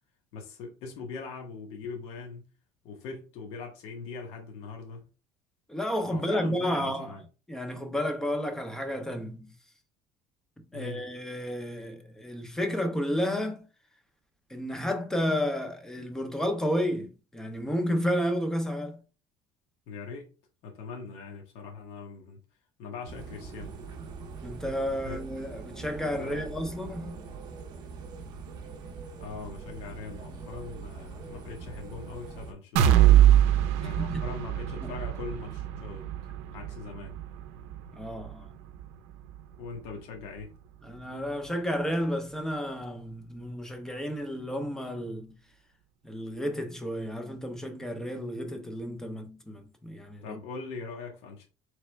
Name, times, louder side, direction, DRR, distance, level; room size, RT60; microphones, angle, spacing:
voice 1, 0.3-2.5 2.8-5.0 6.1-7.2 10.7-11.1 19.9-20.3 20.6-22.4 22.8-23.7 25.0-25.2 26.1-26.5 29.2-32.9 33.8-36.1 36.5-37.2 39.6-40.5 50.2-51.4, left 4 dB, 65° left, 1.0 m, -41 dB
voice 2, 5.7-7.2 7.5-9.5 10.7-13.7 14.5-19.0 24.4-27.2 34.0-34.2 34.8-34.9 37.9-38.5 40.8-45.3 46.0-50.4, equal, 5° left, 0.5 m, -31 dB
sound 1, 23.1-32.5, right 5 dB, 35° right, 0.7 m, -42 dB
sound 2, 32.8-40.5 40.9-41.1 41.5-41.6, right 11 dB, 85° right, 0.6 m, -25 dB
4.0 x 3.3 x 3.3 m
cardioid pair, 175°, 12 cm